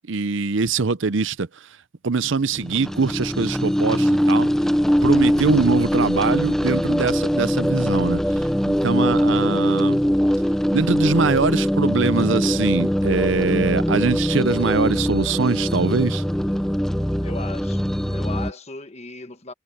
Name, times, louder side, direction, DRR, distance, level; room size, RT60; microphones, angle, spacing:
voice 1, 0.1-1.5 2.0-4.5 5.0-10.0 10.7-16.2, right 4 dB, 60° right, 0.6 m, -22 dB
sound 1, 2.5-18.5, equal, ahead, 0.6 m, -22 dB
voice 2, 17.2-19.5, left 3 dB, 30° left, 1.4 m, -37 dB
head